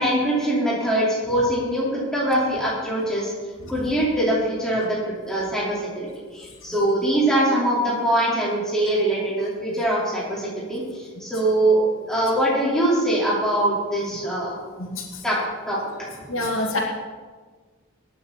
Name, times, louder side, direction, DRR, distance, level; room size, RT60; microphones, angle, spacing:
voice 1, 0.0-3.3 3.7-5.0 5.3-6.1 6.3-11.8 12.1-14.5 15.2-15.4 15.7-16.1, right 1 dB, 5° left, -7 dB, 4.7 m, -23 dB
voice 2, 14.8-15.2 16.3-16.8, left 2 dB, 85° left, 0 dB, 2.2 m, -27 dB
22.0 x 9.5 x 4.5 m, 1.4 s
head